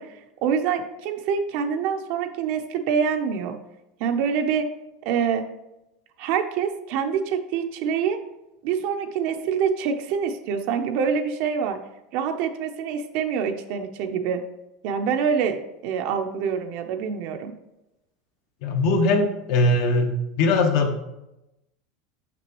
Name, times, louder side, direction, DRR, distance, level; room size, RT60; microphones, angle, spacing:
voice 1, 0.0-3.6 4.0-4.7 5.0-5.5 6.2-8.2 8.6-11.8 12.1-14.4 14.8-15.6 15.8-17.5, right 7 dB, 55° right, 5 dB, 0.6 m, -25 dB
voice 2, 18.6-21.0, left 2 dB, 60° left, 5 dB, 1.1 m, -21 dB
6.8 x 6.0 x 3.0 m, 0.91 s
supercardioid pair, 155°, 3 cm